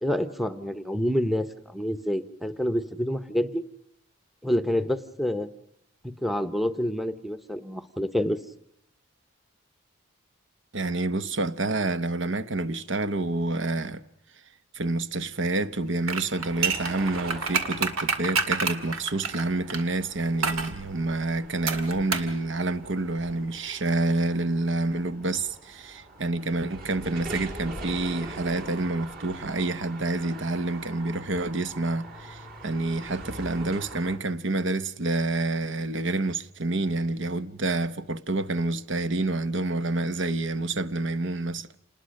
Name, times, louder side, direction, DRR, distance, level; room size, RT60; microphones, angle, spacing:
voice 1, 0.0-3.6 4.4-5.5 6.0-8.4, equal, ahead, 0.8 m, -27 dB
voice 2, 10.7-14.0 14.7-41.7, right 2 dB, 65° right, 0.9 m, -28 dB
sound 1, 16.0-19.8 20.4-20.7 21.7-22.3 22.6-22.7, right 5 dB, 85° right, 2.3 m, -28 dB
sound 2, 16.4-34.2, right 2 dB, 45° right, 3.0 m, -43 dB
28.0 x 20.5 x 6.5 m
head